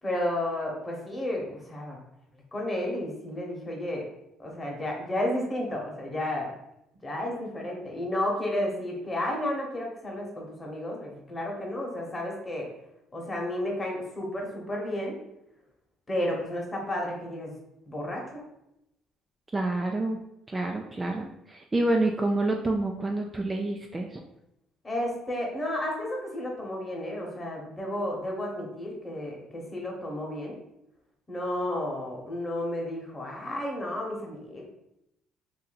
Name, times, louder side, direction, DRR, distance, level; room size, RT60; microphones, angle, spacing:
voice 1, 0.0-2.0 2.5-4.1 4.4-6.5 7.0-12.7 13.1-15.2 16.1-17.5 17.8-18.4 24.8-30.6 31.3-34.7, left 1 dB, 25° left, -1 dB, 1.1 m, -32 dB
voice 2, 19.5-20.2 20.5-24.2, right 2 dB, 20° right, 2 dB, 0.3 m, -28 dB
2.7 x 2.7 x 4.1 m, 0.83 s
cardioid pair, 90°, 0 cm